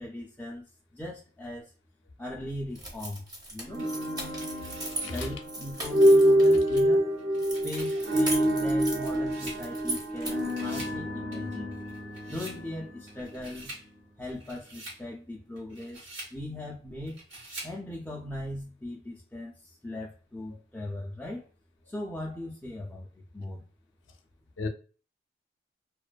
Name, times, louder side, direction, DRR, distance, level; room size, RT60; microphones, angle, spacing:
voice 1, 0.0-1.7 2.2-3.9 5.0-7.1 7.6-11.8 12.3-13.7 14.2-17.2 17.6-21.5 21.9-23.6, left 1 dB, 10° left, 0.3 m, -39 dB
sound 1, 2.7-6.8 7.4-10.6, right 2 dB, 20° right, 0.7 m, -38 dB
sound 2, 3.7-13.8, equal, 60° right, 0.6 m, -26 dB
sound 3, 3.8-5.3 5.9-6.0 7.2-10.2 10.4-11.0 11.3-12.6 13.1-13.9 14.3-15.0 15.6-16.4 17.1-17.8, right 1 dB, 80° right, 1.0 m, -46 dB
voice 2, 4.9-5.3 6.5-6.6 24.6-24.7, left 3 dB, 80° left, 0.5 m, -34 dB
2.5 x 2.2 x 2.2 m
head